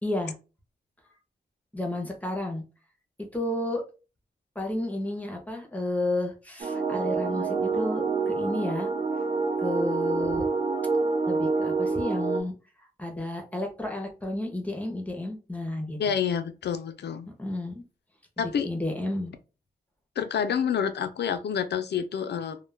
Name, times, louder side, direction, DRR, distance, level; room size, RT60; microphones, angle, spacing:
voice 1, 0.0-0.3 1.7-2.6 3.2-3.8 4.6-8.9 9.6-10.5 11.3-12.5 13.0-16.0 17.3-17.8 18.4-19.3, left 1 dB, 10° left, 0.6 m, -32 dB
sound 1, 6.6-12.4, right 4 dB, 45° right, 0.5 m, -27 dB
voice 2, 16.0-17.3 18.4-18.7 20.2-22.6, left 7 dB, 90° left, 0.4 m, -28 dB
2.2 x 2.1 x 3.2 m
wide cardioid pair, 145°, 17 cm